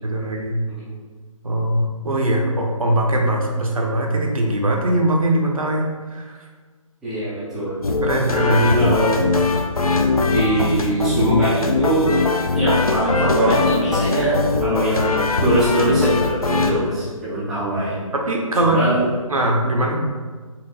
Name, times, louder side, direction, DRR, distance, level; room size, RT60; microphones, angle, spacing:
voice 1, 0.0-0.6 1.4-5.8 6.1-6.4 8.0-8.8 18.1-18.8 19.3-20.0, right 1 dB, 75° right, 0 dB, 0.8 m, -21 dB
voice 2, 7.0-7.8 8.5-9.2 10.3-12.1 12.5-15.1 15.4-18.0 18.6-19.0, right 1 dB, ahead, -12 dB, 0.4 m, -22 dB
sound 1, 7.8-16.7, left 3 dB, 90° left, 0.5 m, -21 dB
4.3 x 2.9 x 2.8 m, 1.4 s
figure-of-eight pair, 140°, 18 cm